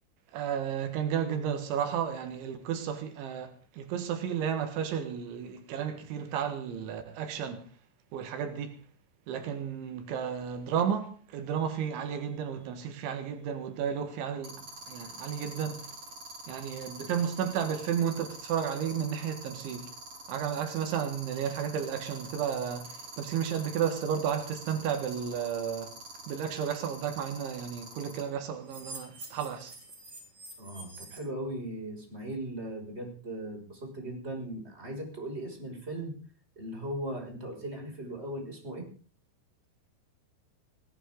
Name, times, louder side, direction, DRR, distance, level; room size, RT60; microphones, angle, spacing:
voice 1, 0.3-7.7 8.1-8.7 9.3-15.9 16.5-19.9 20.3-25.9 26.3-29.7, right 8 dB, 80° right, 4.0 m, -33 dB
sound 1, 11.6-11.8 14.4-28.2 28.6-31.2, right 3 dB, 30° right, 6.6 m, -45 dB
voice 2, 30.6-36.1 36.6-38.9, right 1 dB, 15° right, 6.1 m, -38 dB
19.5 x 18.5 x 3.8 m
omnidirectional pair, 5.3 m